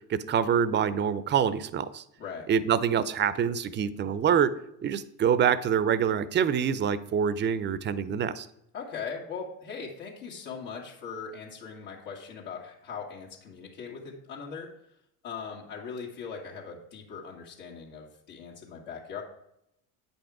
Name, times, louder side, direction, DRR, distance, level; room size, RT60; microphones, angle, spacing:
voice 1, 0.1-2.0 2.5-4.5 4.8-8.5, right 8 dB, 25° right, 17 dB, 0.5 m, -25 dB
voice 2, 8.7-14.7 15.2-19.2, left 5 dB, 70° left, -3 dB, 2.0 m, -40 dB
8.6 x 5.3 x 4.8 m, 0.78 s
hypercardioid pair, 75°, 48 cm